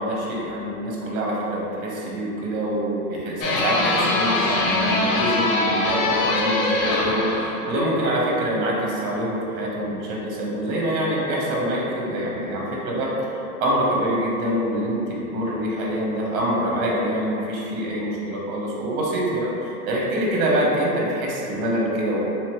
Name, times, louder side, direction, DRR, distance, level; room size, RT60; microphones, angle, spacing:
voice 1, 0.0-13.1 13.6-22.2, right 1 dB, 65° right, -3 dB, 1.0 m, -25 dB
sound 1, 3.4-7.9, left 2 dB, 60° left, 0.7 m, -22 dB
3.5 x 2.9 x 3.0 m, 2.9 s
supercardioid pair, 150°, 46 cm